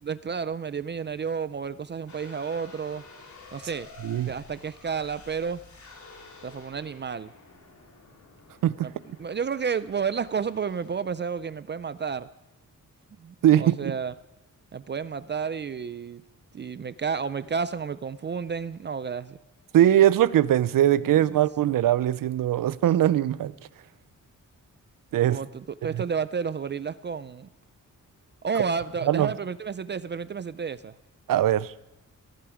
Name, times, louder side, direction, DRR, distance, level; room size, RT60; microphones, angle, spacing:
voice 1, 0.0-3.0 3.5-3.9 4.3-5.6 6.4-7.3 8.8-8.9 9.2-12.3 13.2-14.1 14.7-16.2 16.5-19.4 21.0-21.4 25.3-27.5 28.4-30.9, right 6 dB, 35° right, 0.4 m, -31 dB
sound 1, 2.1-10.9, left 3 dB, 60° left, 3.4 m, -50 dB
voice 2, 13.4-13.9 19.7-23.5 25.1-25.4 25.9-26.0 29.1-29.3 31.3-31.7, right 12 dB, 90° right, 0.7 m, -21 dB
18.0 x 15.0 x 5.0 m
wide cardioid pair, 165°, 32 cm